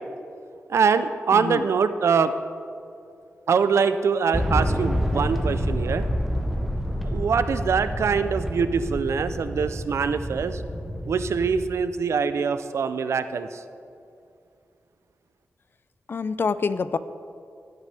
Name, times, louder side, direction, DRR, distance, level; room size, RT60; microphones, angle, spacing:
voice 1, 0.7-2.3 3.5-6.1 7.0-10.6 11.1-13.6, right 6 dB, 70° right, 11 dB, 0.5 m, -23 dB
voice 2, 1.3-1.6 16.1-17.0, left 5 dB, 50° left, 14 dB, 0.4 m, -26 dB
sound 1, 4.3-11.7, equal, ahead, 0.9 m, -28 dB
16.0 x 8.1 x 3.4 m, 2.4 s
wide cardioid pair, 100°, 5 cm